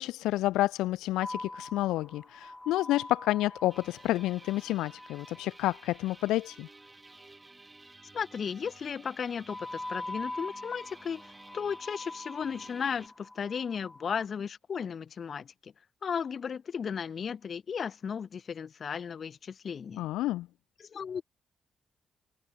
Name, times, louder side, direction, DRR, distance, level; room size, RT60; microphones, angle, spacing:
voice 1, 0.0-6.7 20.0-20.5, left 16 dB, 90° left, 0.5 m, -29 dB
sound 1, 1.2-6.5 9.5-14.2, left 2 dB, 20° left, 2.4 m, -43 dB
sound 2, 3.7-13.1, right 2 dB, 25° right, 5.1 m, -54 dB
voice 2, 8.1-11.2 11.5-15.7 16.0-20.1 20.8-21.3, left 7 dB, 60° left, 2.2 m, -35 dB
supercardioid pair, 50°, 0 cm